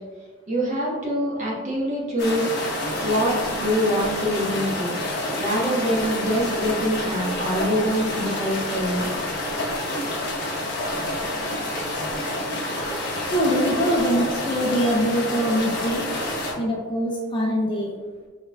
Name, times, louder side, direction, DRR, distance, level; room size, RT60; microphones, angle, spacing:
voice 1, 0.5-2.6 3.0-4.9 5.4-9.1, equal, 35° right, -5 dB, 1.1 m, -24 dB
sound 1, 2.2-16.5, left 1 dB, 50° left, 1.0 m, -28 dB
voice 2, 13.3-16.0 16.6-17.9, equal, 20° left, -2 dB, 0.4 m, -23 dB
4.5 x 4.3 x 2.2 m, 1.5 s
head